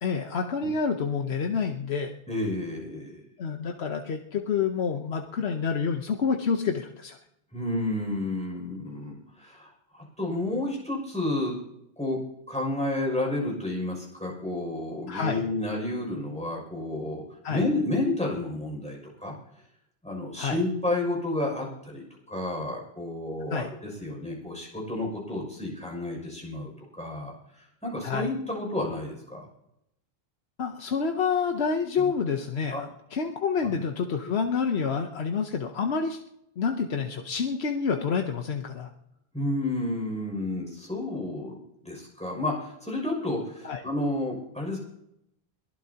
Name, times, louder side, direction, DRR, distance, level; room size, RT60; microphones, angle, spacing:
voice 1, 0.0-2.1 3.4-7.2 15.1-15.5 17.4-17.6 20.4-20.6 23.5-23.7 28.0-28.3 30.6-36.2 36.6-38.9 43.6-43.8, left 5 dB, 90° left, 4 dB, 1.2 m, -28 dB
voice 2, 2.3-3.2 7.5-11.5 12.0-12.2 12.5-17.2 17.5-19.3 20.0-29.5 32.7-32.8 39.3-41.6 41.8-44.8, left 2 dB, 5° left, -2 dB, 6.2 m, -31 dB
22.5 x 16.0 x 2.9 m, 0.79 s
omnidirectional pair, 1.0 m